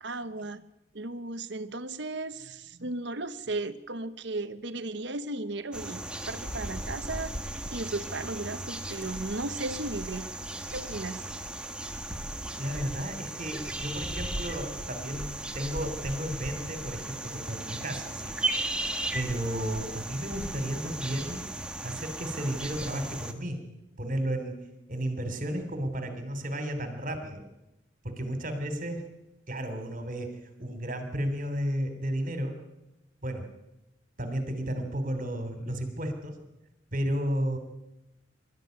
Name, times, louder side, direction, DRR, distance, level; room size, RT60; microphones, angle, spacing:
voice 1, 0.0-0.6 0.9-7.3 7.7-10.3 10.7-11.3, right 2 dB, 65° right, 11 dB, 1.1 m, -35 dB
sound 1, 5.7-23.3, right 1 dB, 5° right, 1.6 m, -36 dB
voice 2, 12.6-18.3 19.1-21.4 21.8-23.6 24.0-24.5 24.9-27.4 28.0-29.0 29.5-32.6 33.2-33.5 34.2-36.4 36.9-37.6, equal, 45° right, 8 dB, 3.4 m, -33 dB
24.5 x 13.0 x 9.4 m, 0.93 s
head